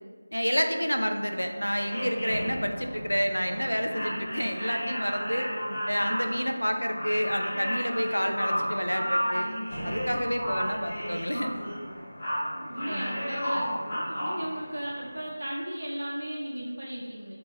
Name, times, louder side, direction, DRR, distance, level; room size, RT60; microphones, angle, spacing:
voice 1, 0.3-5.5 5.9-9.5 9.8-11.6, equal, 85° left, 4 dB, 0.3 m, -29 dB
sound 1, 1.2-15.3, equal, 30° left, 1.3 m, -33 dB
voice 2, 12.6-17.4, right 1 dB, 55° right, -3 dB, 0.4 m, -36 dB
2.6 x 2.3 x 2.9 m, 1.5 s
figure-of-eight pair, 165°, 0 cm